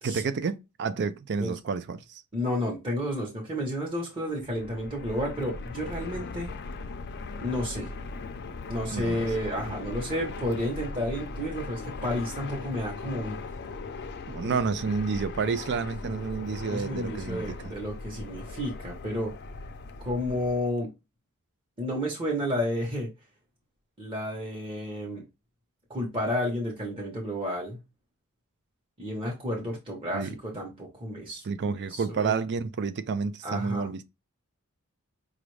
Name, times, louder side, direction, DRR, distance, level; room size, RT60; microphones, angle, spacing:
voice 1, 0.0-2.2 8.9-9.3 14.3-17.6 30.1-30.3 31.4-34.0, right 5 dB, 50° right, 0.4 m, -30 dB
voice 2, 2.3-6.5 7.4-7.9 8.7-13.4 14.4-14.6 16.0-16.1 16.7-19.3 20.0-20.9 21.8-23.1 24.0-25.2 25.9-27.8 29.0-31.4 31.9-32.3 33.4-33.9, equal, 25° right, 1.0 m, -31 dB
Fixed-wing aircraft airplane, 4.4-20.8, left 3 dB, 50° left, 0.5 m, -39 dB
5.0 x 2.4 x 3.1 m
head